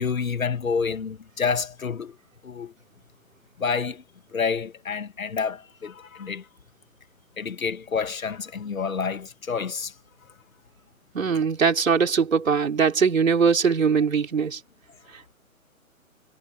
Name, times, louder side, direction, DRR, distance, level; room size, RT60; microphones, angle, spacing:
voice 1, 0.0-2.1 2.4-2.7 3.6-4.0 4.3-6.4 7.4-9.9, left 5 dB, 70° left, 2.2 m, -28 dB
voice 2, 11.1-14.6, right 6 dB, 65° right, 4.7 m, -21 dB
figure-of-eight pair, 140°, 42 cm